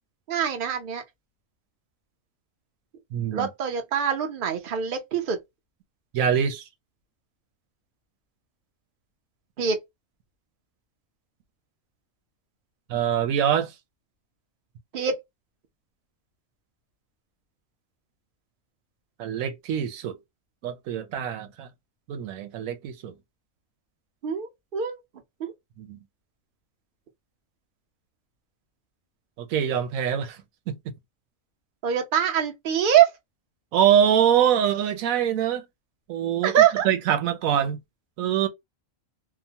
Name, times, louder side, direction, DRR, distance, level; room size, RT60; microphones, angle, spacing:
voice 1, 0.3-1.0 3.3-5.4 9.6-9.8 14.9-15.2 24.2-25.0 25.4-25.5 31.8-33.1 36.4-36.9, right 9 dB, 50° right, 0.8 m, -23 dB
voice 2, 3.1-3.5 6.1-6.7 12.9-13.7 19.2-20.2 20.6-21.7 22.1-23.1 25.8-26.0 29.4-30.4 30.7-30.8 33.7-35.6 36.1-36.5 36.8-37.8 38.2-38.5, right 9 dB, 90° right, 1.0 m, -24 dB
2.9 x 2.1 x 2.7 m
omnidirectional pair, 1.4 m